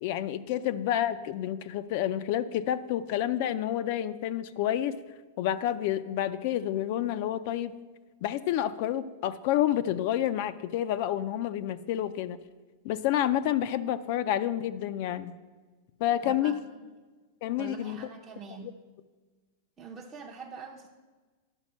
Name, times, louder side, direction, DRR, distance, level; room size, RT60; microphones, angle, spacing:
voice 1, 0.0-5.0 5.4-7.8 8.2-12.4 12.8-15.3 16.0-16.6 17.4-18.0 18.6-18.7, left 11 dB, 50° left, 12 dB, 0.4 m, -29 dB
voice 2, 16.2-16.9 17.6-18.8 19.8-20.9, right 5 dB, 20° right, -2 dB, 0.6 m, -44 dB
10.5 x 5.2 x 6.2 m, 1.3 s
supercardioid pair, 150°, 0 cm